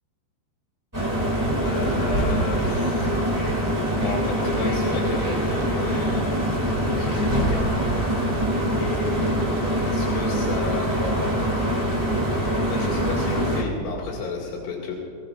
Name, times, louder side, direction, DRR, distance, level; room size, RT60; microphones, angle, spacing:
sound 1, 0.9-13.6, right 1 dB, 30° right, 0.3 m, -24 dB
voice 1, 1.6-3.2 4.0-6.5 6.8-7.8 8.8-9.4 9.8-11.5 12.6-15.0, left 4 dB, 85° left, -4 dB, 4.6 m, -32 dB
26.0 x 16.5 x 2.5 m, 2.8 s
omnidirectional pair, 5.6 m